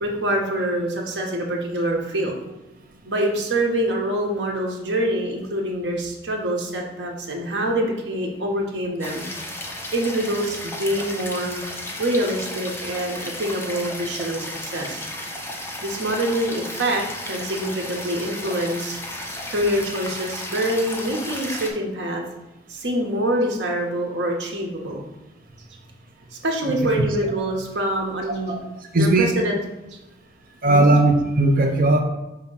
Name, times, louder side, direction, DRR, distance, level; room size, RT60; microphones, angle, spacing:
voice 1, 0.0-2.3 3.0-9.3 9.9-11.6 12.0-15.1 15.8-19.0 19.5-22.2 22.7-25.1 26.4-28.5 29.0-29.6 30.7-30.9, right 1 dB, 75° right, 1 dB, 1.2 m, -25 dB
sound 1, 9.0-21.7, left 1 dB, 15° left, 0.8 m, -34 dB
voice 2, 28.9-29.3 30.6-32.0, right 2 dB, 50° right, 4 dB, 0.7 m, -17 dB
5.8 x 3.2 x 5.6 m, 1.0 s
head